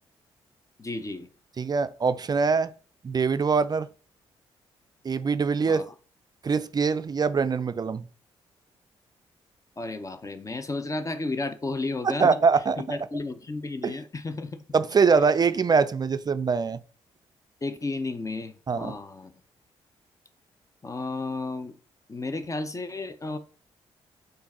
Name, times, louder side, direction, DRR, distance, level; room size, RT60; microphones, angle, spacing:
voice 1, 0.8-1.3 5.7-5.8 9.8-12.3 12.8-14.6 15.2-15.3 17.6-19.3 20.8-21.8 22.1-23.4, left 3 dB, 30° left, 0.6 m, -33 dB
voice 2, 1.6-2.7 3.0-3.9 5.0-5.9 6.4-8.0 12.0-13.0 13.8-13.9 14.7-16.8 18.7-18.9, right 5 dB, 35° right, 0.3 m, -23 dB
4.5 x 2.6 x 4.2 m
supercardioid pair, 50°, 12 cm